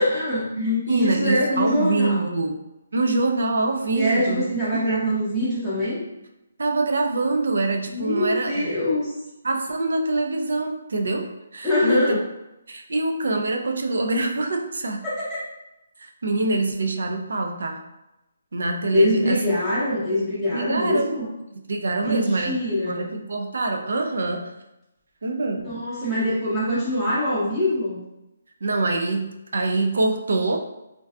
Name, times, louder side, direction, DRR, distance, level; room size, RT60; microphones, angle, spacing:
voice 1, 0.0-2.4 3.9-6.0 7.9-9.1 11.6-12.2 15.0-15.2 18.9-21.3 22.0-23.1 25.6-28.0, left 1 dB, ahead, -15 dB, 0.5 m, -23 dB
voice 2, 0.6-2.6 2.9-4.4 4.7-5.0 6.6-8.7 9.4-12.2 12.7-15.1 16.0-17.9 18.5-19.4 20.5-21.1 21.5-22.6 22.9-24.5 25.2-25.7 28.6-30.6, right 2 dB, 75° right, 4 dB, 0.4 m, -25 dB
2.5 x 2.3 x 2.2 m, 0.92 s
hypercardioid pair, 170°, 0 cm